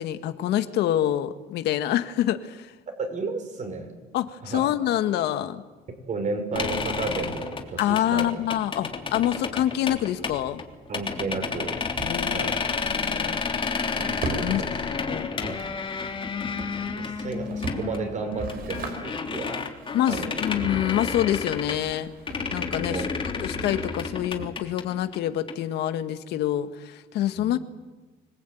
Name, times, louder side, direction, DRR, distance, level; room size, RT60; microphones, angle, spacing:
voice 1, 0.0-2.7 4.1-5.6 7.8-10.6 12.0-12.6 12.8-13.4 14.4-14.6 15.1-15.3 19.9-22.1 22.5-23.1 23.4-27.6, left 12 dB, 80° left, 9 dB, 1.7 m, -26 dB
voice 2, 3.0-3.9 4.4-4.6 5.9-8.5 10.9-11.8 12.3-12.5 14.4-14.8 15.4-15.6 16.9-19.6 20.1-20.4 22.8-23.1 27.4-27.5, right 3 dB, 45° right, 6 dB, 5.8 m, -33 dB
sound 1, 6.5-22.0 22.3-25.6, left 5 dB, 30° left, 3.4 m, -31 dB
Drawer open or close, 9.8-25.0, right 3 dB, 60° right, 6.0 m, -40 dB
25.5 x 19.0 x 9.3 m, 1.3 s
cardioid pair, 110°, 17 cm